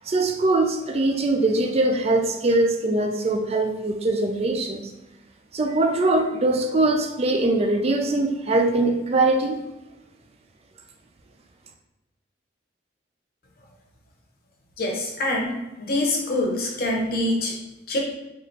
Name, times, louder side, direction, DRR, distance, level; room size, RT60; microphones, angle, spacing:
voice 1, 0.1-4.8 5.5-9.6, right 2 dB, 35° right, 4 dB, 0.3 m, -22 dB
voice 2, 14.8-17.5 17.9-18.0, left 1 dB, 55° left, 0 dB, 0.7 m, -25 dB
4.0 x 2.5 x 3.2 m, 0.99 s
head